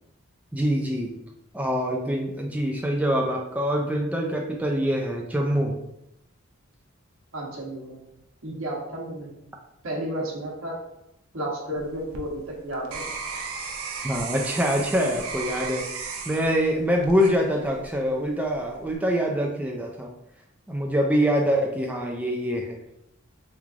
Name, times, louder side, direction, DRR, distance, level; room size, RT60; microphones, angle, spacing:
voice 1, 0.5-1.1 1.5-5.7 14.0-15.8 16.3-20.1 20.7-22.8, equal, 5° right, 0 dB, 0.3 m, -25 dB
voice 2, 7.3-8.0 8.4-9.3 9.8-10.8 11.3-13.1, right 1 dB, 70° right, -2 dB, 1.0 m, -32 dB
sound 1, 11.8-18.0 18.5-19.0, right 5 dB, 85° right, 0.5 m, -35 dB
3.5 x 3.1 x 2.5 m, 0.82 s
head